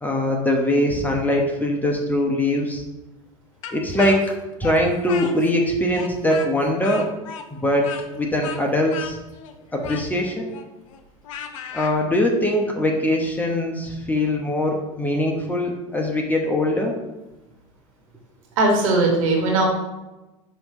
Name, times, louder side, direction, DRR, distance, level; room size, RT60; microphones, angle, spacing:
voice 1, 0.0-2.8 3.7-4.3 4.6-7.1 7.5-9.2 9.7-10.5 11.7-17.0, left 1 dB, 10° left, 0 dB, 1.1 m, -22 dB
Speech, 3.6-5.6 5.9-11.9, left 7 dB, 75° left, 0.7 m, -35 dB
voice 2, 18.6-19.7, right 2 dB, 80° right, -1 dB, 1.9 m, -19 dB
5.6 x 3.0 x 5.5 m, 1.0 s
hypercardioid pair, 90°, 17 cm